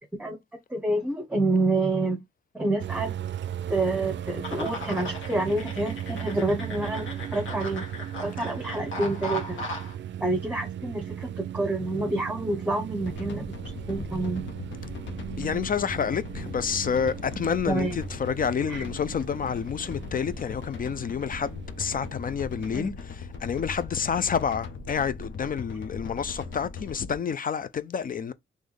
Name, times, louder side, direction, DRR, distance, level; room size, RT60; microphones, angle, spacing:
voice 1, 0.7-2.2 2.5-3.1 3.7-7.8 8.2-9.6 10.2-14.4 17.7-18.0 18.7-18.8 22.7-22.9, right 2 dB, 5° right, 0.9 m, -28 dB
sound 1, 2.8-22.7, right 10 dB, 70° right, 0.4 m, -37 dB
sound 2, 4.4-9.9, left 2 dB, 90° left, 1.7 m, -38 dB
sound 3, 13.0-27.1, left 5 dB, 70° left, 0.9 m, -39 dB
voice 2, 15.4-28.3, left 7 dB, 45° left, 0.4 m, -29 dB
3.3 x 3.1 x 3.7 m
wide cardioid pair, 110°, 20 cm